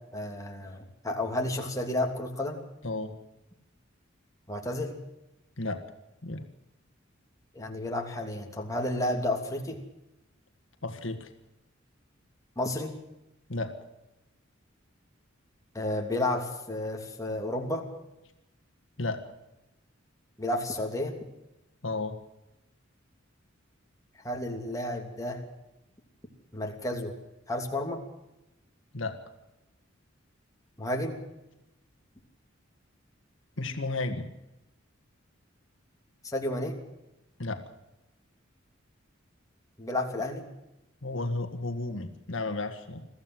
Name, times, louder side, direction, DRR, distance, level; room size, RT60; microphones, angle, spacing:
voice 1, 0.1-2.6 4.5-5.0 7.5-9.8 12.6-12.9 15.7-17.8 20.4-21.2 24.2-25.4 26.5-27.1 27.5-28.0 30.8-31.2 36.2-36.8 39.8-40.5, left 1 dB, 15° left, 1 dB, 3.0 m, -31 dB
voice 2, 2.8-3.2 5.6-5.8 6.2-6.5 10.8-11.3 13.5-13.8 19.0-19.3 21.8-22.2 28.9-29.2 33.6-34.3 37.4-37.7 41.0-43.1, left 2 dB, 70° left, 6 dB, 1.8 m, -33 dB
22.5 x 15.0 x 7.8 m, 0.93 s
head